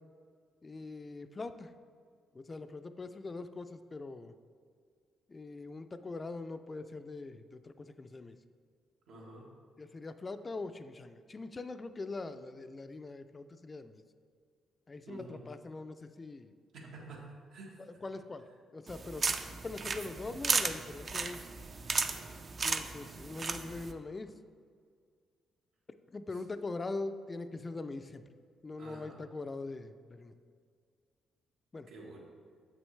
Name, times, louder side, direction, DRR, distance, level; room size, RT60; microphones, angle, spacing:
voice 1, 0.6-1.7 2.3-4.3 5.3-8.4 9.8-14.0 14.9-16.5 17.8-18.4 18.7-21.5 22.6-24.4 26.1-28.2 28.6-30.3 31.7-31.9, left 3 dB, 30° left, 10 dB, 0.3 m, -42 dB
voice 2, 9.1-9.5 15.1-15.5 16.7-17.8 28.8-29.2 31.9-32.2, right 2 dB, 80° right, -2 dB, 1.4 m, -49 dB
sound 1, 18.9-23.9, right 4 dB, 40° right, 0.4 m, -35 dB
7.2 x 6.1 x 3.2 m, 2.1 s
cardioid pair, 90°, 0 cm